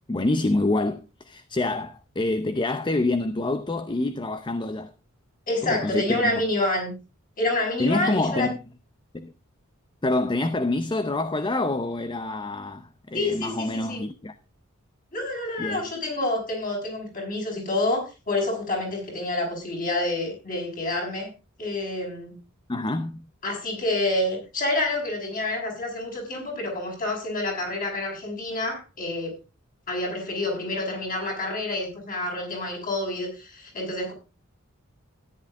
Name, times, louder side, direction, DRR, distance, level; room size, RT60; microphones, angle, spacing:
voice 1, 0.1-4.9 5.6-6.4 7.8-8.6 9.1-9.3 10.0-14.4 15.6-15.8 22.7-23.3, left 2 dB, 20° left, 0.6 m, -26 dB
voice 2, 5.5-6.9 7.4-8.5 13.1-14.0 15.1-21.3 21.6-22.3 23.4-29.4 29.9-34.1, left 2 dB, 40° left, 6.2 m, -28 dB
14.0 x 10.5 x 3.6 m
head